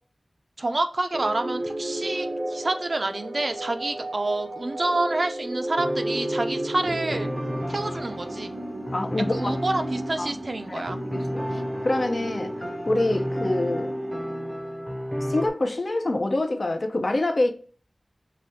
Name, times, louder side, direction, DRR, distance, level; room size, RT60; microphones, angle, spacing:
voice 1, 0.6-7.3 7.7-8.5 9.3-11.0, right 2 dB, 60° right, 0.4 m, -28 dB
sound 1, 1.1-14.8, right 1 dB, 85° right, 0.7 m, -34 dB
sound 2, 5.8-15.5, equal, 10° right, 0.5 m, -32 dB
voice 2, 8.9-9.6 10.2-10.4 10.7-10.8 11.1-13.9 15.3-17.5, left 2 dB, 60° left, 0.5 m, -26 dB
4.9 x 2.2 x 2.7 m
wide cardioid pair, 70°, 0 cm